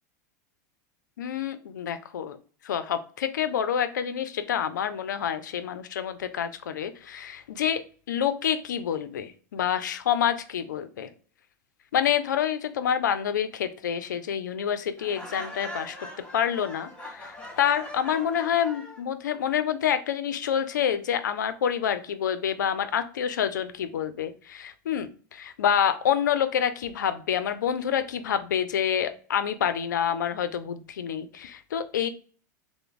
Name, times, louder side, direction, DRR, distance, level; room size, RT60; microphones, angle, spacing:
voice 1, 1.2-2.4 2.6-7.8 8.1-11.1 11.9-16.0 16.3-32.1, left 9 dB, 90° left, 11 dB, 0.4 m, -27 dB
Laughter, 15.0-19.0, left 1 dB, 10° left, 1.0 m, -41 dB
3.3 x 2.0 x 3.8 m, 0.41 s
hypercardioid pair, 105°, 10 cm